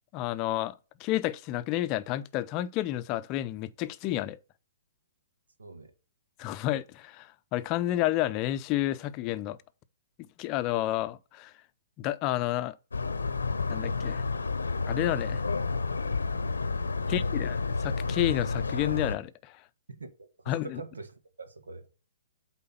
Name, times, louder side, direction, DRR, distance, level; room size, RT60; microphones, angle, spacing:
voice 1, 0.1-4.4 6.4-9.6 10.2-11.5 12.0-12.8 13.7-14.2 14.9-15.4 17.1-19.6 20.5-20.8, left 14 dB, 30° left, 0.6 m, -30 dB
voice 2, 5.6-5.9 17.0-17.4 19.9-21.1 21.4-21.9, right 3 dB, 85° right, 1.6 m, -44 dB
sound 1, 12.9-19.2, left 4 dB, 90° left, 0.8 m, -30 dB
8.5 x 3.9 x 5.6 m
hypercardioid pair, 130°, 0 cm